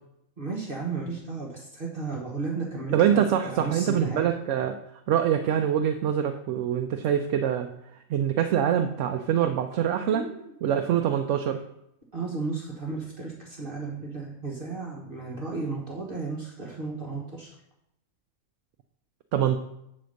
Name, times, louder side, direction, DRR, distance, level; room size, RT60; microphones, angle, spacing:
voice 1, 0.4-4.3 10.1-10.5 12.1-17.5, right 4 dB, 40° right, -3 dB, 1.4 m, -34 dB
voice 2, 2.9-4.8 5.1-7.7 8.1-10.3 10.6-11.6 19.3-19.6, right 9 dB, 70° right, 6 dB, 0.9 m, -24 dB
8.0 x 4.3 x 6.4 m, 0.78 s
omnidirectional pair, 1.4 m